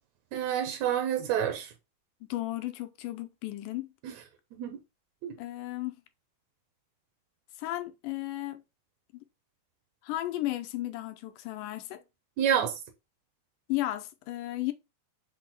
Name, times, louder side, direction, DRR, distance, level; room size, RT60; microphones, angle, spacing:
voice 1, 0.3-1.7 4.5-4.8 5.2-5.3 12.4-12.8, right 9 dB, 75° right, 1.8 m, -28 dB
voice 2, 2.2-3.9 5.4-5.9 7.6-8.6 9.1-9.2 10.0-12.0 13.7-14.7, left 16 dB, 90° left, 2.1 m, -34 dB
6.0 x 2.0 x 4.0 m
omnidirectional pair, 3.6 m